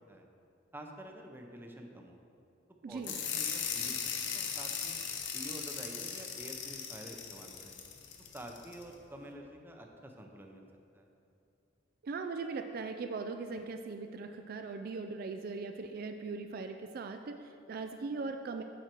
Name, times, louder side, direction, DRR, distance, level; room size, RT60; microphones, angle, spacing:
voice 1, 0.7-2.2 2.9-5.0 5.3-7.8 8.3-10.7 10.9-11.1, right 1 dB, 10° right, 2 dB, 0.6 m, -48 dB
voice 2, 2.8-3.2 12.0-18.6, right 4 dB, 50° right, 6 dB, 0.3 m, -39 dB
sound 1, 3.0-8.8, left 7 dB, 75° left, 0.8 m, -38 dB
7.6 x 6.5 x 4.4 m, 2.6 s
head